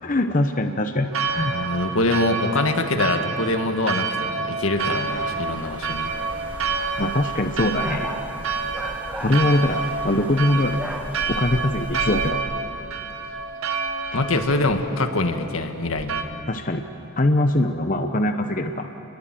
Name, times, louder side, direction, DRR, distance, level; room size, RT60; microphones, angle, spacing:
voice 1, 0.0-1.5 7.0-8.2 9.2-10.9 11.3-12.4 16.5-16.8 17.2-18.9, left 1 dB, 40° left, 6 dB, 0.9 m, -22 dB
Church bell, 1.1-16.2, right 4 dB, 70° right, 1.6 m, -29 dB
voice 2, 1.4-6.1 14.1-16.3, left 2 dB, 75° left, 6 dB, 1.8 m, -24 dB
sound 1, 5.1-12.3, equal, 10° right, 2.2 m, -36 dB
29.0 x 21.5 x 7.7 m, 3.0 s
head